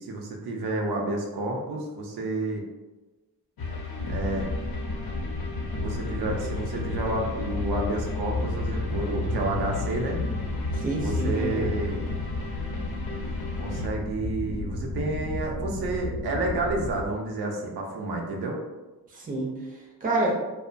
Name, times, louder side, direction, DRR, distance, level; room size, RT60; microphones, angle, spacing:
voice 1, 0.0-2.6 4.1-4.5 5.8-10.2 11.0-12.0 13.6-18.6, right 2 dB, 90° right, 0 dB, 0.6 m, -30 dB
sound 1, 3.6-13.9, left 4 dB, 70° left, 0.6 m, -36 dB
sound 2, 4.0-17.1, left 2 dB, 30° left, 0.4 m, -32 dB
voice 2, 10.7-11.7 19.1-20.3, right 2 dB, 25° right, -2 dB, 0.5 m, -28 dB
2.9 x 2.0 x 2.4 m, 1.1 s
wide cardioid pair, 150°, 38 cm